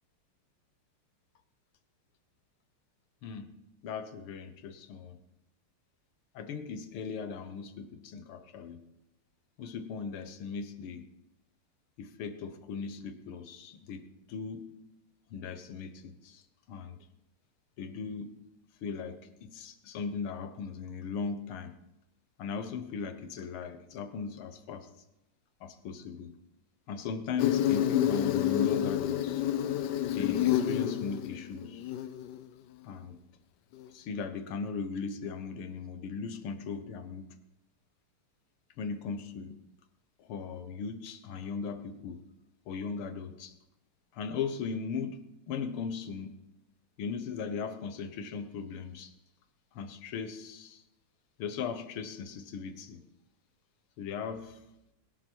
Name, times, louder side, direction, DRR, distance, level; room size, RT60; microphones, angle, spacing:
voice 1, 3.2-3.6 3.8-5.2 6.4-8.8 9.6-11.1 12.0-14.8 15.3-16.4 16.7-17.1 17.8-18.4 18.8-21.8 22.4-24.9 25.6-26.3 26.9-29.4 30.1-31.9 32.8-33.2 33.9-37.3 38.8-39.6 40.2-42.2 42.7-43.5 44.1-46.4 47.0-49.1 49.7-50.8 51.4-53.0 54.0-54.6, left 5 dB, 90° left, 10 dB, 2.0 m, -38 dB
Insect, 27.4-32.4, left 11 dB, 70° left, 1.1 m, -29 dB
20.0 x 11.0 x 4.6 m, 0.90 s
omnidirectional pair, 2.3 m